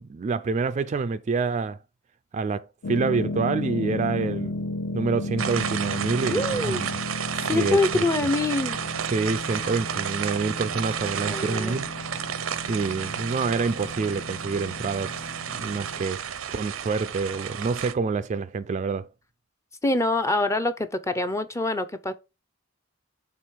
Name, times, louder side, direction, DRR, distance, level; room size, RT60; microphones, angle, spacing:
voice 1, 0.0-1.8 2.3-4.5 4.9-7.0 7.5-8.1 9.1-11.9 12.7-15.2 15.5-16.2 16.5-19.1, right 4 dB, 35° right, 0.3 m, -27 dB
sound 1, 2.8-16.0, left 2 dB, 60° left, 1.1 m, -34 dB
sound 2, 5.4-17.9, right 8 dB, 90° right, 0.6 m, -32 dB
voice 2, 6.3-6.9 7.4-8.8 9.6-9.7 11.3-11.8 19.8-22.1, left 2 dB, 15° left, 0.5 m, -25 dB
6.1 x 3.5 x 4.6 m
head